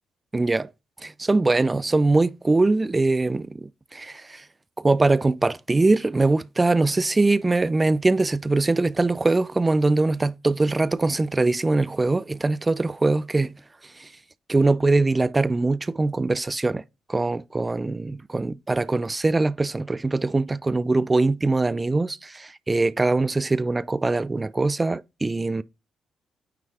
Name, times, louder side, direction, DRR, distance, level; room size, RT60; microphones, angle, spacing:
voice 1, 0.3-0.7 1.0-4.4 4.8-13.5 14.0-14.1 14.5-16.8 17.1-25.6, right 3 dB, 25° right, 0.3 m, -22 dB
9.4 x 3.2 x 3.4 m
cardioid pair, 75°, 0 cm